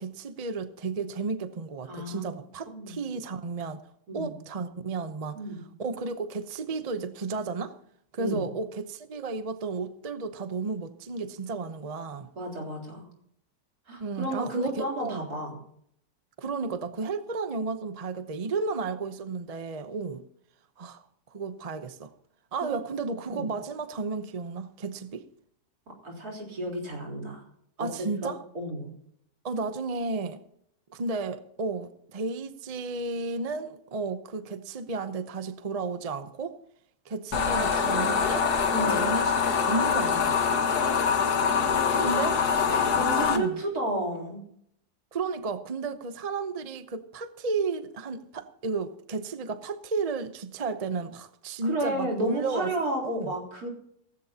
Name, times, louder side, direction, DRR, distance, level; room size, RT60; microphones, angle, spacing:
voice 1, 0.0-3.8 4.1-5.4 5.8-7.8 8.1-12.3 14.0-15.2 16.4-20.2 20.8-21.0 21.3-22.1 22.5-25.3 27.8-28.4 29.4-30.4 30.9-36.6 37.1-38.5 38.9-40.4 42.0-42.4 43.1-43.6 45.1-52.7 53.0-53.3, right 4 dB, 35° right, 0.7 m, -33 dB
voice 2, 1.9-2.3 2.7-3.0 4.1-4.3 5.3-5.6 8.2-8.4 12.4-13.1 13.9-15.6 22.6-22.7 23.3-23.5 26.0-27.4 27.8-28.9 38.7-39.1 41.9-42.2 42.9-44.4 51.6-53.7, right 1 dB, 75° right, 4.3 m, -32 dB
sound 1, 37.3-43.4, left 6 dB, 90° left, 2.0 m, -24 dB
17.5 x 15.5 x 2.8 m
omnidirectional pair, 1.6 m